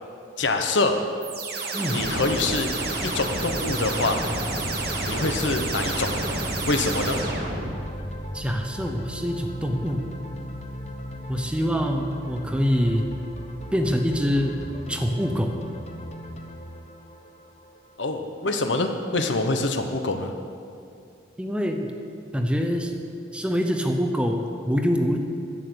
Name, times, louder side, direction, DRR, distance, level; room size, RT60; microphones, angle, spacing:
voice 1, 0.4-1.0 1.9-2.7 3.0-4.2 5.1-6.1 6.7-7.2 18.0-20.3, left 3 dB, 80° left, 6 dB, 1.0 m, -25 dB
sound 1, 1.2-8.0, right 2 dB, 55° right, 1.4 m, -29 dB
sound 2, 3.6-18.3, equal, 35° left, 1.0 m, -37 dB
voice 2, 8.3-10.0 11.3-13.1 13.7-14.6 14.9-15.6 21.4-21.9 22.3-22.9 23.3-25.2, equal, 5° right, 4 dB, 0.7 m, -25 dB
11.5 x 8.3 x 6.9 m, 2.5 s
head